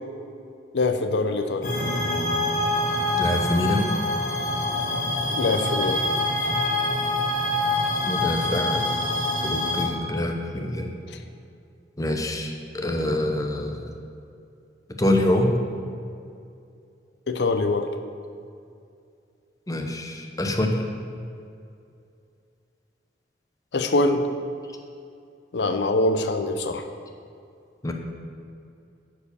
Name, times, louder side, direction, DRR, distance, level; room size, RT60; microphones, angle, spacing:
voice 1, 0.7-1.7 5.3-6.0 17.3-17.9 23.7-24.2 25.5-26.8, left 2 dB, 75° left, 7 dB, 0.6 m, -23 dB
sound 1, 1.6-9.8, left 1 dB, 45° left, 1.7 m, -25 dB
voice 2, 3.2-3.9 8.1-8.8 9.4-10.9 12.0-13.8 15.0-15.5 19.7-20.8 27.8-27.9, left 1 dB, 20° left, 3 dB, 0.9 m, -25 dB
11.0 x 5.0 x 7.0 m, 2.5 s
head